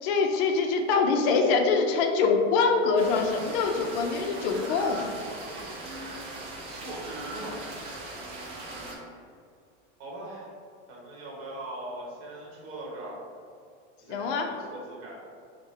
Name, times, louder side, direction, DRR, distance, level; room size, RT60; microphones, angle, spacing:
voice 1, 0.0-5.1 14.1-14.5, left 4 dB, 50° left, 3 dB, 0.4 m, -24 dB
sound 1, 3.0-9.0, right 2 dB, 20° right, 0.3 m, -39 dB
voice 2, 5.0-5.7 6.7-7.6 10.0-10.5 10.9-13.2 14.0-15.2, right 1 dB, 35° right, -4 dB, 1.1 m, -41 dB
5.0 x 2.1 x 3.2 m, 2.3 s
supercardioid pair, 150°, 37 cm